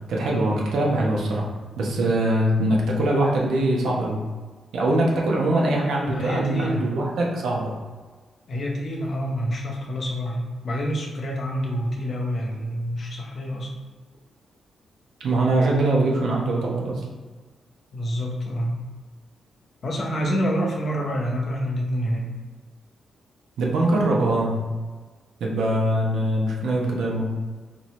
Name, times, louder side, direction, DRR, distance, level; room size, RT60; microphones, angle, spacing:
voice 1, 0.1-1.5 1.8-4.2 4.7-7.7 15.2-17.0 23.6-24.6 25.4-27.2, right 1 dB, 85° right, -2 dB, 0.9 m, -22 dB
voice 2, 6.1-6.9 8.5-13.8 17.9-18.7 19.8-22.3, equal, 50° left, -1 dB, 0.8 m, -27 dB
4.3 x 2.9 x 3.2 m, 1.4 s
cardioid pair, 125°, 0 cm